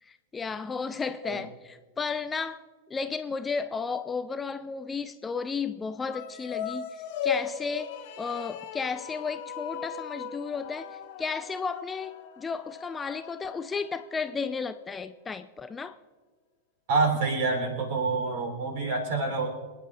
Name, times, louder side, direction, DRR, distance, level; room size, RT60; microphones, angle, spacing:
voice 1, 0.0-2.6 2.9-16.0, left 5 dB, 15° left, 0.4 m, -33 dB
sound 1, 6.0-14.5, left 7 dB, 45° left, 1.3 m, -38 dB
voice 2, 16.9-19.5, right 3 dB, 50° right, 3.7 m, -27 dB
27.5 x 9.8 x 2.5 m
figure-of-eight pair, 90°, 0 cm